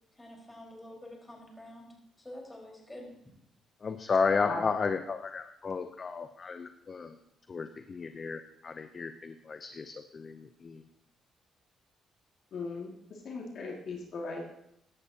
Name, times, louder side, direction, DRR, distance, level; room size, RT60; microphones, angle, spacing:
voice 1, 0.2-1.9 2.2-3.1, left 1 dB, 15° left, -1 dB, 4.7 m, -47 dB
voice 2, 3.8-7.1 7.5-10.8, left 5 dB, 40° left, 8 dB, 0.7 m, -33 dB
voice 3, 12.5-14.5, left 3 dB, 65° left, -1 dB, 2.2 m, -38 dB
15.5 x 11.5 x 2.9 m, 0.77 s
cardioid pair, 90°, 0 cm